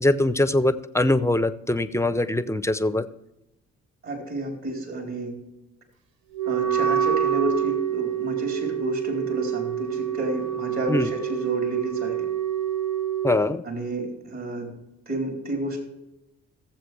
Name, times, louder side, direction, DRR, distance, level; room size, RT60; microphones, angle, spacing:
voice 1, 0.0-3.1 10.9-11.1 13.2-13.6, left 2 dB, 10° left, 14 dB, 0.7 m, -22 dB
voice 2, 4.0-5.4 6.5-12.3 13.6-14.7 15.1-15.8, right 2 dB, 50° right, 1 dB, 4.0 m, -30 dB
Wind instrument woodwind instrument, 6.3-13.4, right 9 dB, 70° right, 1.0 m, -27 dB
16.5 x 7.6 x 3.4 m, 0.92 s
hypercardioid pair, 45°, 35 cm